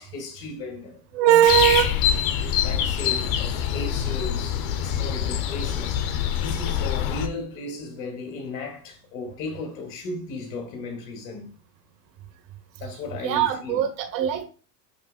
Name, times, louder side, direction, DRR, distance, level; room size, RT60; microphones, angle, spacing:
voice 1, 0.0-1.6 2.6-11.6 12.8-13.8, left 3 dB, 85° left, 2.5 m, -36 dB
voice 2, 1.1-1.9 13.2-14.5, right 10 dB, 90° right, 1.7 m, -20 dB
sound 1, 1.5-7.3, left 9 dB, 65° left, 1.1 m, -25 dB
11.0 x 3.8 x 2.2 m
supercardioid pair, 95°, 49 cm